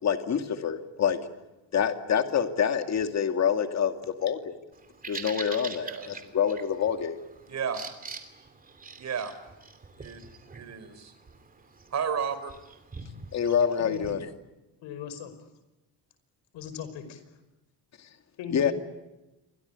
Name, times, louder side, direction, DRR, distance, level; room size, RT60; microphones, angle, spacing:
voice 1, 0.0-1.2 1.7-4.6 5.1-7.2 13.3-14.2 18.5-18.7, left 8 dB, 40° left, 7 dB, 2.4 m, -26 dB
Bird vocalization bird call bird song, 4.7-14.1, right 4 dB, 20° right, 2.8 m, -44 dB
voice 2, 7.5-7.9 9.0-9.3 10.0-10.2 10.5-11.1 11.9-12.5, right 7 dB, 40° right, 11 dB, 4.2 m, -32 dB
voice 3, 13.8-14.2 14.8-15.5 16.5-17.2 18.4-18.7, left 7 dB, 90° left, 11 dB, 5.4 m, -39 dB
28.5 x 24.0 x 8.4 m, 1.0 s
cardioid pair, 180°, 43 cm